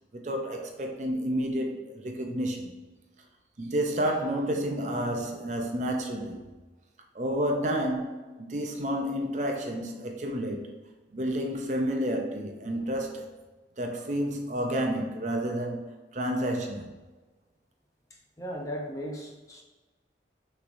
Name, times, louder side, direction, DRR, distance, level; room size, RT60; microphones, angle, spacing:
voice 1, 0.1-2.8 3.6-6.4 7.1-10.7 11.1-13.3 13.8-16.9, equal, 40° right, 0.5 m, -30 dB
voice 2, 18.4-19.6, equal, 20° left, 0.6 m, -36 dB
6.3 x 3.2 x 2.6 m
head